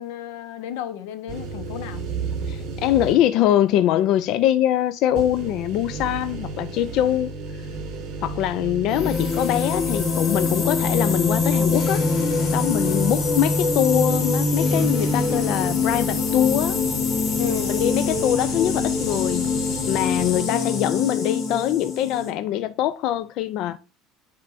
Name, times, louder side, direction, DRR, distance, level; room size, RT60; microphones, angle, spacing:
voice 1, 0.0-2.0 12.8-13.1 17.4-17.8 20.4-20.9, left 10 dB, 85° left, 1.0 m, -33 dB
sound 1, 1.3-3.4 3.9-4.0 5.1-20.4, right 3 dB, 45° right, 3.2 m, -34 dB
voice 2, 2.5-7.3 8.2-12.1 12.4-16.8 17.7-23.8, left 12 dB, 50° left, 0.4 m, -23 dB
sound 2, 8.9-22.3, left 4 dB, 35° left, 1.3 m, -24 dB
9.4 x 4.4 x 2.6 m
cardioid pair, 165°, 0 cm